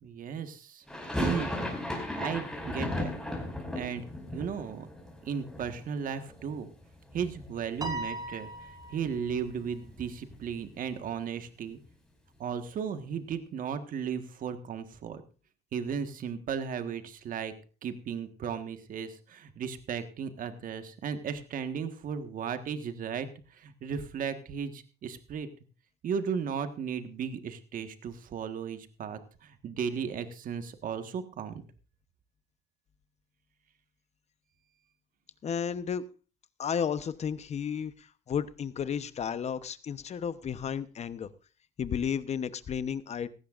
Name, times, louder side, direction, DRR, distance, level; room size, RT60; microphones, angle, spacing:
voice 1, 0.0-1.5 2.1-3.1 3.7-4.1 4.3-4.9 5.2-6.7 7.1-8.5 8.9-11.8 12.4-15.2 15.7-17.5 17.8-25.5 26.0-31.6, right 7 dB, 55° right, 9 dB, 1.5 m, -35 dB
sound 1, 0.9-6.8 7.1-7.9 8.2-8.3 8.6-10.7, left 1 dB, 5° left, 5.5 m, -36 dB
Piano, 7.8-9.3, right 1 dB, 20° right, 1.7 m, -38 dB
voice 2, 35.4-36.0 36.6-41.3 41.8-43.3, left 7 dB, 40° left, 14 dB, 0.9 m, -33 dB
17.5 x 15.0 x 2.5 m, 0.35 s
cardioid pair, 110°, 17 cm